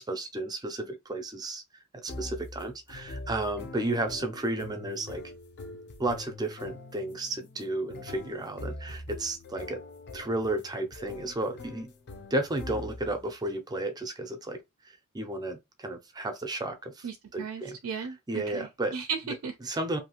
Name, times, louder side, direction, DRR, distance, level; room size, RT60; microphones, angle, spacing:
voice 1, 0.0-1.6 1.9-5.2 6.0-9.8 10.1-11.9 12.3-14.6 15.1-17.1 17.3-17.8 18.3-18.9 19.6-20.0, right 2 dB, 20° right, 0.5 m, -33 dB
sound 1, 2.1-13.2, left 2 dB, 55° left, 0.5 m, -43 dB
voice 2, 17.0-19.5, right 6 dB, 85° right, 0.4 m, -36 dB
2.6 x 2.4 x 2.9 m
head